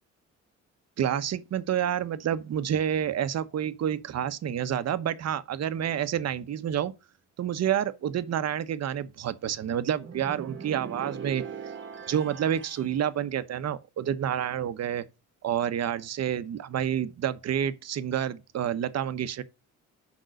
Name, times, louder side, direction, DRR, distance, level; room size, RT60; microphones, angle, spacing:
voice 1, 1.0-6.9 7.4-11.4 12.1-15.0 15.4-19.4, right 9 dB, 60° right, 1.0 m, -29 dB
sound 1, 10.0-13.0, right 7 dB, 40° right, 1.3 m, -40 dB
6.6 x 5.4 x 6.3 m
cardioid pair, 90°, 30 cm